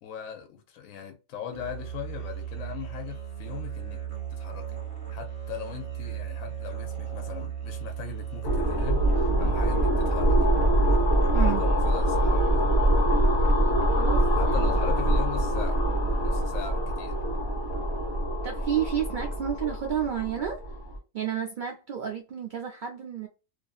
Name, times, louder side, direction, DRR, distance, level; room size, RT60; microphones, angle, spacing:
voice 1, 0.0-4.0 4.3-4.8 5.1-10.5 11.3-12.6 14.3-15.8 16.2-17.2, left 9 dB, 80° left, 1.0 m, -40 dB
Musical instrument, 1.5-11.7, right 9 dB, 10° right, 1.3 m, -36 dB
sound 1, 8.4-21.0, right 1 dB, 55° left, 1.2 m, -24 dB
voice 2, 11.3-11.6 14.0-14.3 14.6-14.7 18.4-20.6 21.1-23.3, right 9 dB, 85° right, 0.4 m, -30 dB
2.5 x 2.5 x 2.3 m
omnidirectional pair, 1.4 m